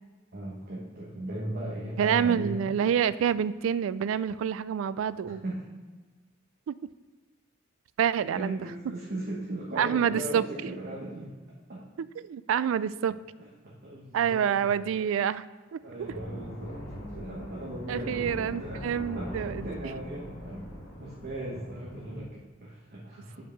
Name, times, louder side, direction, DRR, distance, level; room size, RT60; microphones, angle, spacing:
voice 1, 0.3-2.7 5.4-5.7 8.3-11.3 11.7-11.8 13.1-14.9 15.8-20.7 21.0-23.4, right 1 dB, 50° right, -4 dB, 1.1 m, -38 dB
voice 2, 2.0-5.4 6.7-6.8 8.0-8.6 9.8-10.4 12.0-13.2 14.1-15.5 15.7-15.8 17.9-19.7, right 8 dB, 80° right, 17 dB, 0.3 m, -27 dB
sound 1, 16.0-22.2, equal, 45° left, 2.0 m, -41 dB
5.4 x 4.7 x 6.4 m, 1.3 s
head